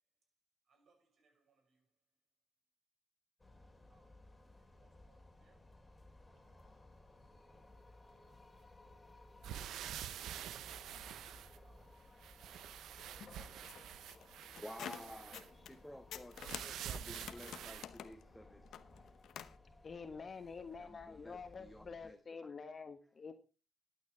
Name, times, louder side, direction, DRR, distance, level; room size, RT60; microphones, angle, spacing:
voice 1, 0.7-1.9 3.9-4.3 4.6-5.9 6.3-6.7 7.6-8.2 11.3-12.1, right 4 dB, 70° right, 6.0 m, -77 dB
sound 1, 3.4-22.1, left 2 dB, 20° left, 3.1 m, -60 dB
sound 2, 9.4-11.9 12.2-15.5 16.3-17.8, right 10 dB, 90° right, 0.6 m, -47 dB
sound 3, 13.0-15.8 16.1-19.6, left 9 dB, 80° left, 0.9 m, -50 dB
voice 2, 14.0-18.6 20.8-22.5, left 1 dB, 5° left, 1.4 m, -53 dB
voice 3, 19.8-23.3, left 5 dB, 50° left, 1.4 m, -48 dB
12.5 x 9.1 x 4.6 m
cardioid pair, 65°, 0 cm